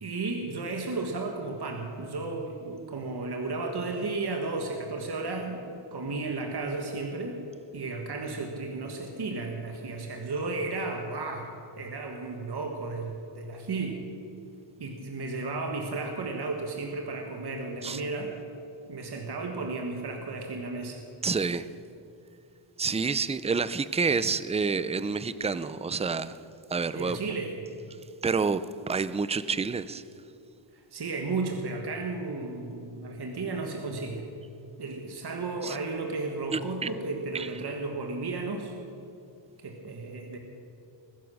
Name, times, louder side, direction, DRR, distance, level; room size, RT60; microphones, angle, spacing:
voice 1, 0.0-7.4 7.7-11.5 11.8-13.9 14.8-18.3 18.9-21.0 26.9-27.5 30.9-34.3 34.8-38.7 39.6-40.4, right 3 dB, 50° right, 2 dB, 1.6 m, -33 dB
voice 2, 21.2-21.7 22.8-26.4 26.7-27.2 28.2-30.0 35.6-35.8 36.5-36.6 37.3-37.5, right 5 dB, 15° right, 15 dB, 0.4 m, -28 dB
20.5 x 10.5 x 6.3 m, 2.7 s
wide cardioid pair, 145°, 50 cm